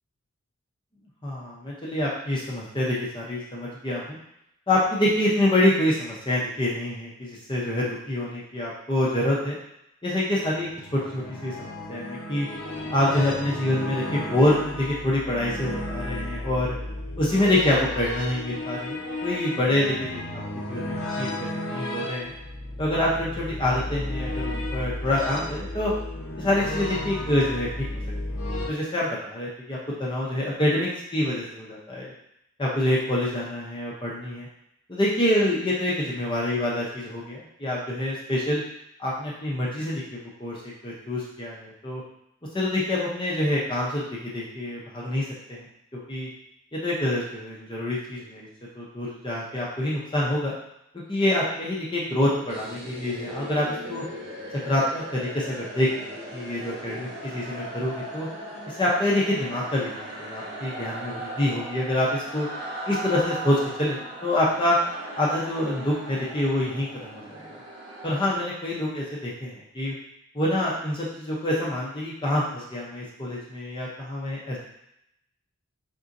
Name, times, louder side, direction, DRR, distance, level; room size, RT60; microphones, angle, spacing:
voice 1, 1.2-4.2 4.7-9.6 10.0-12.5 12.9-16.8 17.2-20.2 20.7-22.3 22.8-25.9 26.4-27.9 28.7-32.1 32.6-34.5 34.9-38.6 39.0-40.6 40.8-42.0 42.5-45.6 46.1-46.3 46.7-48.5 48.8-50.5 51.1-54.0 54.7-58.3 58.8-62.5 62.9-64.8 65.2-67.6 68.0-69.9 70.3-74.6, left 1 dB, 20° left, -5 dB, 0.6 m, -26 dB
sound 1, 10.4-28.7, left 1 dB, 60° left, 0.8 m, -33 dB
sound 2, 52.5-68.3, right 1 dB, 55° right, 1.0 m, -38 dB
4.0 x 3.6 x 2.5 m, 0.79 s
head